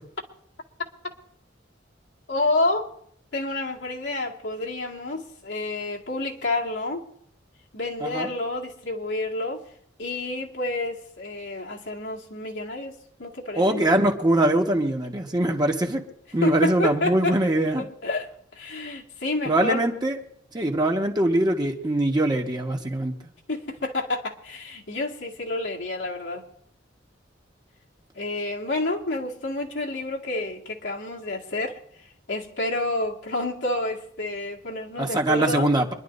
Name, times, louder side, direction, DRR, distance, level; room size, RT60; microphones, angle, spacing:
voice 1, 2.3-2.9 3.3-7.0 7.7-9.6 10.0-13.8 16.4-17.4 18.0-19.8 23.5-26.4 28.1-31.8 32.3-35.7, left 2 dB, 85° left, 2.1 m, -29 dB
voice 2, 13.5-16.0 16.3-17.9 19.5-20.2 20.5-23.1 35.0-35.9, right 1 dB, 25° right, 1.5 m, -22 dB
26.5 x 11.0 x 2.7 m
head